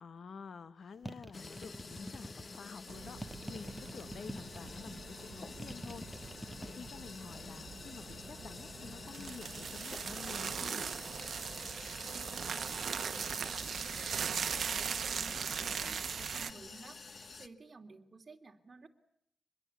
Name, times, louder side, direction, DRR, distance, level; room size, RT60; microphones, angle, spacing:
voice 1, 0.0-3.2 3.5-6.1 6.6-10.9, left 5 dB, 80° left, 13 dB, 1.0 m, -49 dB
sound 1, 1.0-2.6 3.2-5.0 5.6-6.7, equal, 5° left, 1.7 m, -45 dB
sound 2, 1.3-17.5, left 4 dB, 50° left, 1.3 m, -49 dB
sound 3, 2.9-16.5, right 6 dB, 80° right, 0.9 m, -40 dB
voice 2, 12.0-13.0 13.3-18.9, right 3 dB, 40° right, 3 dB, 2.9 m, -55 dB
24.5 x 21.5 x 8.4 m, 0.76 s
wide cardioid pair, 95°, 0 cm